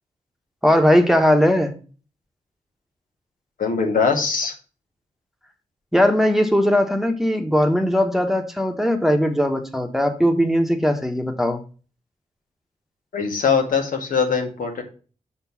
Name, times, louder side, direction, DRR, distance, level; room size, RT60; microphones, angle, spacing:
voice 1, 0.6-1.7 5.9-11.6, equal, ahead, 5 dB, 1.1 m, -19 dB
voice 2, 3.6-4.5 13.1-14.8, left 5 dB, 80° left, 3 dB, 1.7 m, -21 dB
6.3 x 4.4 x 5.8 m, 0.38 s
cardioid pair, 80°, 14 cm